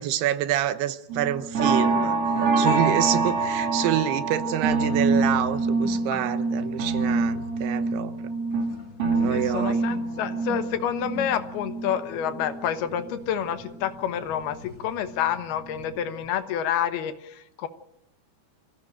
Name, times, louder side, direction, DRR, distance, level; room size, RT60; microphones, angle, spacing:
voice 1, 0.0-2.2 2.6-8.2 9.2-9.8, right 12 dB, 85° right, 12 dB, 3.1 m, -27 dB
sound 1, 1.1-13.2 13.6-15.2 15.6-15.9 16.2-16.3, right 3 dB, 40° right, 3.1 m, -26 dB
sound 2, 2.3-2.4 3.7-14.8 15.1-15.4, left 5 dB, 50° left, 2.7 m, -45 dB
voice 2, 9.3-17.7, left 9 dB, 80° left, 9 dB, 3.2 m, -28 dB
25.5 x 15.5 x 9.0 m, 0.80 s
omnidirectional pair, 4.5 m